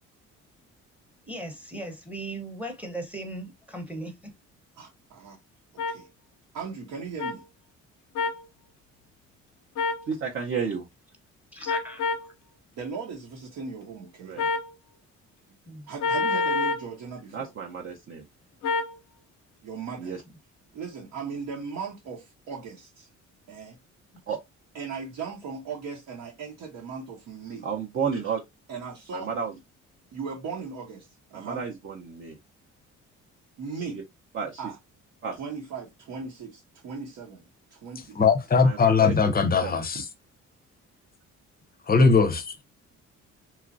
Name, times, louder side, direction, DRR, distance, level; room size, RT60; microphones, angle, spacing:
voice 1, 1.3-4.3 11.5-12.1 15.7-15.9, right 1 dB, 5° right, 0.7 m, -38 dB
voice 2, 4.8-5.4 5.9-6.1 6.5-7.5 12.7-14.4 15.9-17.5 19.6-20.1 20.7-23.1 23.5-23.8 24.7-27.7 28.7-29.3 30.1-31.6 33.6-34.0 34.6-34.8 35.3-37.4 37.7-38.3 42.0-42.1, right 5 dB, 80° right, 0.9 m, -38 dB
sound 1, 5.8-5.9 7.2-7.3 8.2-8.4 9.8-10.0 11.7-12.3 14.4-14.7 16.0-16.9 18.6-18.9, left 4 dB, 85° left, 0.5 m, -27 dB
voice 3, 10.1-10.8 14.2-14.5 17.3-18.3 20.0-20.2 24.3-24.4 27.6-28.4 29.1-29.5 31.3-32.4 33.9-34.0 34.3-34.6 35.2-35.4 38.6-39.1 39.6-39.8, right 6 dB, 40° right, 0.6 m, -31 dB
voice 4, 38.2-40.1 41.9-42.5, left 5 dB, 30° left, 0.6 m, -20 dB
3.0 x 2.4 x 2.5 m
cardioid pair, 90°, 30 cm